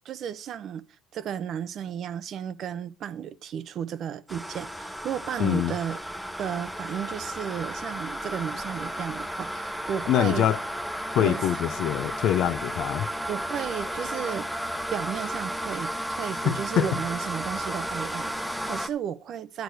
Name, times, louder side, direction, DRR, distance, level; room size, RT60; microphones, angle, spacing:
voice 1, 0.0-0.8 1.1-6.0 6.4-10.5 11.2-11.4 13.3-14.5 14.9-19.6, right 9 dB, 50° right, 0.6 m, -33 dB
sound 1, 4.3-18.9, equal, ahead, 0.7 m, -33 dB
voice 2, 5.4-5.7 10.1-10.6 11.1-13.1 16.4-16.9, left 11 dB, 60° left, 0.7 m, -24 dB
10.5 x 4.9 x 7.8 m
cardioid pair, 115°, 0 cm